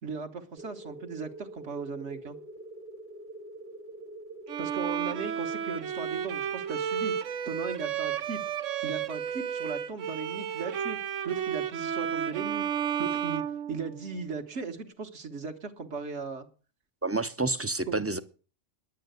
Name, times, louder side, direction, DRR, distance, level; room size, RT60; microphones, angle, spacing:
voice 1, 0.0-2.4 4.6-7.2 7.4-8.4 8.8-11.0 11.2-12.6 13.0-13.4 13.7-16.5 17.9-18.2, right 5 dB, 65° right, 5 dB, 1.6 m, -37 dB
sound 1, 0.6-8.9, right 2 dB, 40° right, 1.2 m, -47 dB
Bowed string instrument, 4.5-14.3, right 8 dB, 90° right, 1.2 m, -32 dB
voice 2, 17.0-18.2, right 2 dB, 20° right, 13 dB, 0.4 m, -29 dB
10.0 x 9.4 x 8.0 m, 0.38 s
omnidirectional pair, 1.3 m